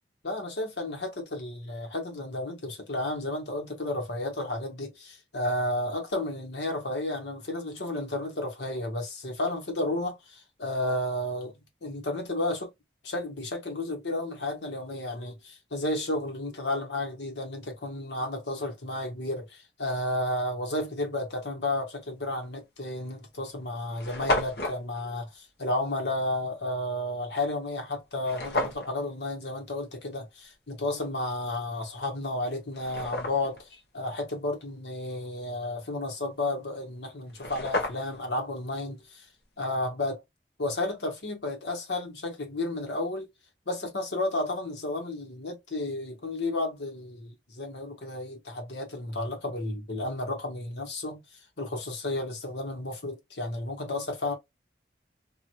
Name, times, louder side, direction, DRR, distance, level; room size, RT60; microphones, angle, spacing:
voice 1, 0.2-12.7 13.0-39.3 39.6-40.2 40.6-43.3 43.7-54.3, left 2 dB, 75° left, 1.3 m, -32 dB
sound 1, 22.4-22.6 23.3-23.4 23.6-23.7 23.9-24.8 28.2-28.9 31.8-31.9 32.5-33.6 37.0-37.1 37.3-38.3, left 2 dB, 60° left, 1.0 m, -31 dB
3.0 x 2.5 x 2.5 m
head